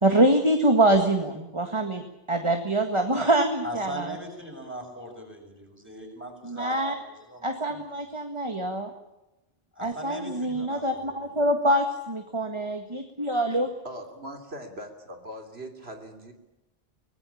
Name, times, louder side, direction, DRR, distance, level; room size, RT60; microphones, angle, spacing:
voice 1, 0.0-4.2 6.4-6.9 7.4-8.9 9.8-13.7, right 1 dB, 30° right, 5 dB, 1.9 m, -25 dB
voice 2, 3.6-7.8 9.7-11.3, equal, 10° right, 2 dB, 7.0 m, -40 dB
voice 3, 13.8-16.3, equal, 85° right, 4 dB, 3.4 m, -40 dB
25.0 x 19.0 x 8.6 m, 0.97 s
omnidirectional pair, 1.0 m